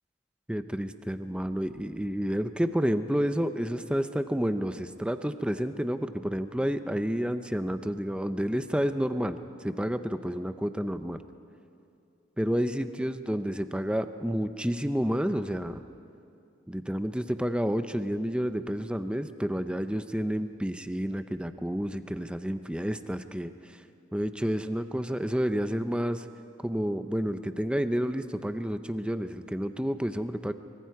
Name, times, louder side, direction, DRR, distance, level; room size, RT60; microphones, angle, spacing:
voice 1, 0.5-11.2 12.4-15.8 16.7-23.8 24.1-26.3 26.6-30.5, equal, 5° right, 10 dB, 0.6 m, -30 dB
24.5 x 23.0 x 4.8 m, 2.6 s
head